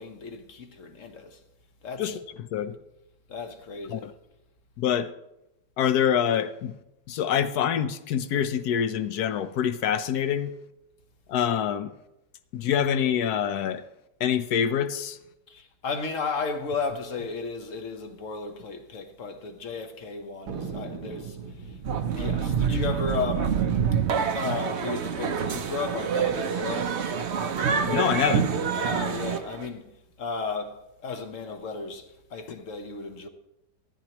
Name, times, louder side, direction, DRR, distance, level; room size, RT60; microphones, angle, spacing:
voice 1, 0.0-1.4 1.8-2.2 3.3-4.1 15.5-21.4 22.1-23.6 24.3-26.9 28.7-29.9 30.2-30.8 31.0-33.3, left 4 dB, 50° left, 1.3 m, -34 dB
voice 2, 4.8-5.1 5.8-6.7 7.1-10.5 11.3-11.9 12.5-13.8 14.2-15.2 27.8-28.5, left 9 dB, 70° left, 1.2 m, -25 dB
Thunder, 20.5-25.3 25.5-25.6 25.9-26.4 26.9-28.1, right 5 dB, 70° right, 1.5 m, -42 dB
sound 1, 21.8-29.7, right 7 dB, 55° right, 0.8 m, -27 dB
15.5 x 13.5 x 3.0 m
omnidirectional pair, 1.8 m